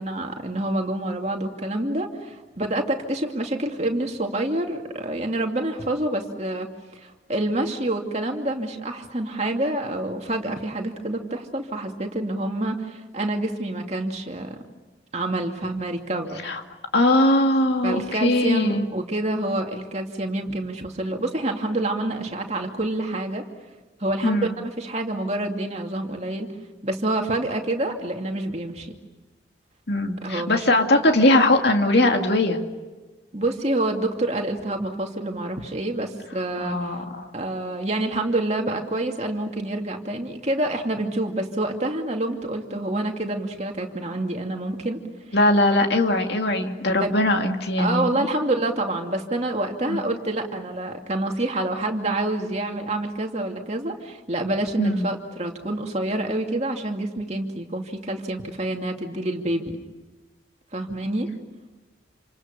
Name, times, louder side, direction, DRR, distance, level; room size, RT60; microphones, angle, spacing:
voice 1, 0.0-6.7 6.9-14.6 15.1-16.5 17.8-23.4 24.0-26.5 26.8-28.9 30.2-30.7 33.3-37.0 37.3-45.0 45.3-45.4 47.0-47.2 47.8-59.8 60.7-61.3, right 1 dB, 35° right, 2 dB, 2.6 m, -27 dB
voice 2, 16.9-18.8 24.2-24.6 29.9-32.6 36.6-37.3 45.3-48.3 49.9-50.0 54.8-55.1, left 1 dB, 55° left, 4 dB, 2.5 m, -20 dB
28.0 x 27.5 x 6.9 m, 1.3 s
head